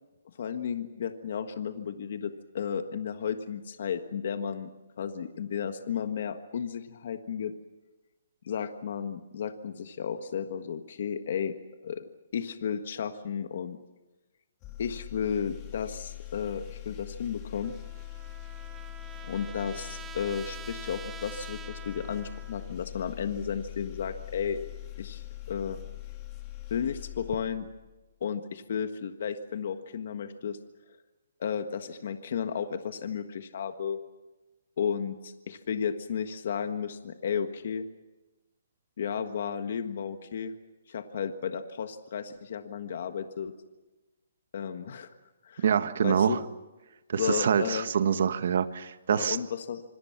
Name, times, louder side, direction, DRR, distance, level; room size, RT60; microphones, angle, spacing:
voice 1, 0.4-4.7 5.0-7.5 8.4-11.5 11.8-12.0 12.3-13.8 14.8-17.7 19.2-24.6 25.0-25.8 26.7-27.7 28.2-30.6 31.4-34.0 34.8-37.8 39.0-40.5 40.9-43.5 44.5-45.1 45.4-45.6 46.0-46.4 47.2-47.9 49.1-49.8, left 7 dB, 50° left, 8 dB, 1.5 m, -33 dB
sound 1, 14.6-28.0, left 17 dB, 20° left, 2.7 m, -42 dB
Trumpet, 17.6-22.8, right 8 dB, 10° right, 0.8 m, -46 dB
voice 2, 45.6-46.4 47.1-49.4, right 7 dB, 55° right, 10 dB, 1.5 m, -25 dB
26.0 x 26.0 x 6.0 m, 1.1 s
hypercardioid pair, 170°, 0 cm